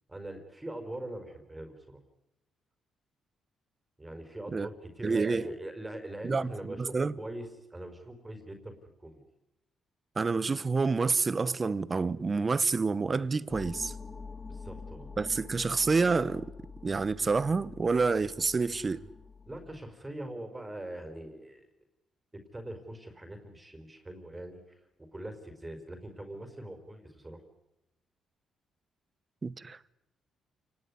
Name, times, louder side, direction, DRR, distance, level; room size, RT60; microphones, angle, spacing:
voice 1, 0.1-2.0 4.0-8.7 9.0-9.2 14.5-15.1 19.5-21.6 22.3-24.8 25.1-27.4, right 1 dB, 15° right, 4.9 m, -42 dB
voice 2, 5.0-5.5 6.2-7.1 10.2-13.9 15.2-16.5 16.8-19.0 29.4-30.0, right 4 dB, 30° right, 1.1 m, -28 dB
sound 1, 13.5-19.8, left 4 dB, 25° left, 2.7 m, -46 dB
29.0 x 19.5 x 9.9 m
cardioid pair, 90°, 0 cm